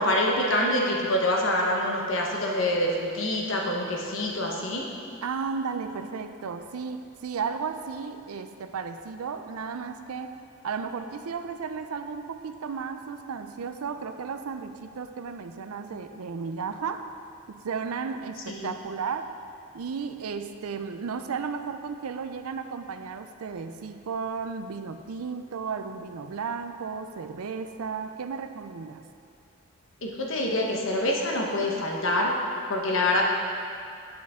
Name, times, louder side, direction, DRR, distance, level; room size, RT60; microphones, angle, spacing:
voice 1, 0.0-4.9 18.5-18.7 30.0-32.4 32.7-33.2, left 1 dB, 60° left, -1 dB, 1.1 m, -26 dB
voice 2, 5.2-17.1 17.5-19.4 19.7-29.0, right 5 dB, 85° right, 8 dB, 0.5 m, -34 dB
8.5 x 7.8 x 3.6 m, 2.4 s
head